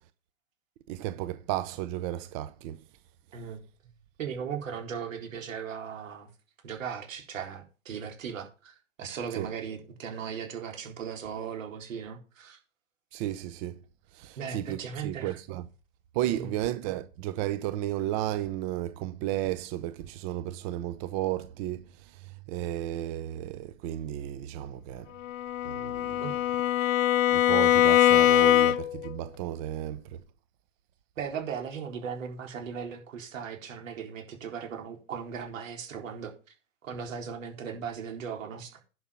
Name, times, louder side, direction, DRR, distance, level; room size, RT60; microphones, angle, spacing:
voice 1, 0.9-2.8 9.4-9.5 13.1-13.7 14.1-15.6 16.1-21.8 22.5-25.1 25.6-26.2 27.3-30.0, right 13 dB, 30° right, 0.6 m, -33 dB
voice 2, 4.2-6.3 6.6-12.6 14.4-15.4 16.3-16.5 26.2-26.4 31.2-36.3 36.8-38.8, right 7 dB, 75° right, 4.2 m, -37 dB
Bowed string instrument, 25.2-29.1, left 12 dB, 75° left, 0.8 m, -22 dB
11.0 x 6.2 x 5.7 m
hypercardioid pair, 140°, 40 cm